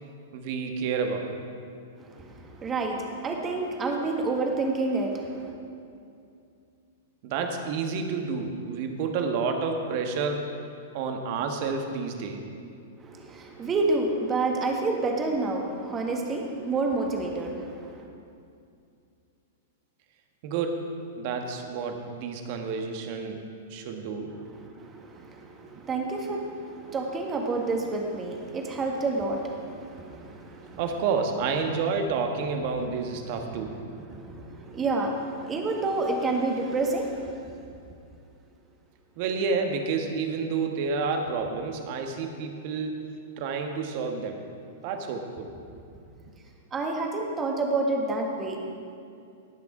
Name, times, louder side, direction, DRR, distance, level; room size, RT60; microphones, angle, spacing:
voice 1, 0.3-1.5 7.2-10.5 10.9-12.4 20.4-20.9 21.2-23.4 23.7-24.3 30.8-33.7 39.2-43.1 43.4-44.4 44.8-45.5, right 5 dB, 50° right, 4 dB, 1.4 m, -29 dB
voice 2, 2.0-5.5 13.0-18.1 24.4-30.8 32.8-32.9 33.3-37.5 46.7-48.6, right 3 dB, 25° right, 1 dB, 1.6 m, -29 dB
18.0 x 6.0 x 4.9 m, 2.5 s
hypercardioid pair, 105°, 0 cm